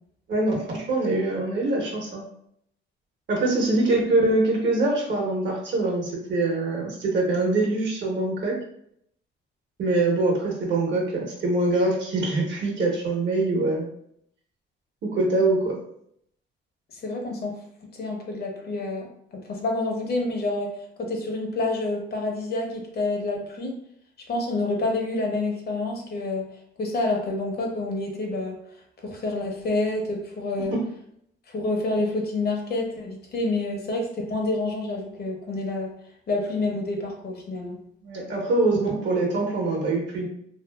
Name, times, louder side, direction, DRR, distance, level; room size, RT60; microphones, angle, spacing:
voice 1, 0.3-2.2 3.3-8.6 9.8-13.9 15.0-15.8 30.7-30.8 38.0-40.3, right 2 dB, 65° right, -1 dB, 1.0 m, -24 dB
voice 2, 16.9-17.6 17.9-20.7 21.0-23.7 24.3-26.5 26.8-28.6 29.0-30.8 31.5-35.9 36.3-37.8, left 2 dB, 50° left, 1 dB, 0.7 m, -28 dB
2.6 x 2.5 x 2.2 m, 0.70 s
cardioid pair, 90°, 20 cm